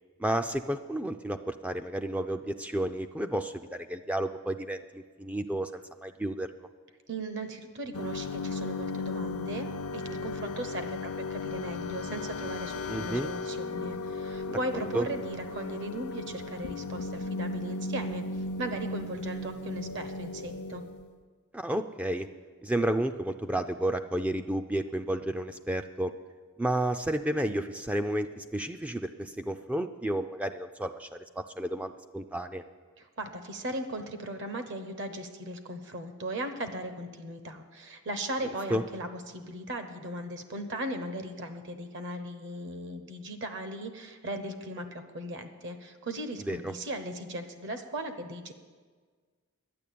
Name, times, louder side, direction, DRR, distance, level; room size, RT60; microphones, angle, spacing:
voice 1, 0.2-6.5 12.9-13.3 14.5-14.6 14.9-15.1 21.5-22.3 22.6-26.1 26.6-32.6 38.7-38.8 46.4-46.7, right 1 dB, 5° right, 8 dB, 0.3 m, -31 dB
voice 2, 7.1-18.2 18.6-20.8 33.0-48.5, right 1 dB, 55° right, 9 dB, 1.0 m, -37 dB
sound 1, 7.9-21.1, left 3 dB, 90° left, 0.7 m, -36 dB
11.0 x 9.3 x 8.5 m, 1.5 s
head